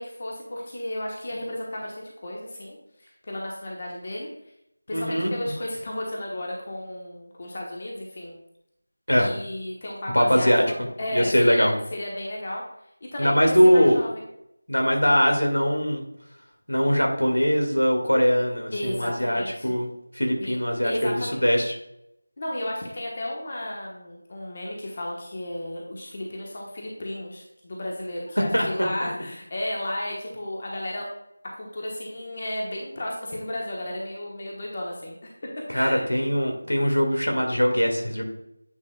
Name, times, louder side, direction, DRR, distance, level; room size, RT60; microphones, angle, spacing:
voice 1, 0.0-4.3 4.9-8.4 9.2-12.6 13.0-14.2 18.7-19.7 20.3-20.5 20.8-21.3 22.4-31.1 31.5-35.3 35.6-36.0, left 1 dB, 30° left, -2 dB, 1.1 m, -33 dB
voice 2, 4.9-5.5 9.1-9.3 10.1-10.6 11.1-11.7 13.2-14.0 14.7-16.0 16.7-19.9 20.1-21.7 28.5-28.9 35.7-38.2, equal, 80° left, 2 dB, 1.9 m, -21 dB
9.3 x 5.4 x 2.3 m, 0.80 s
figure-of-eight pair, 170°, 0 cm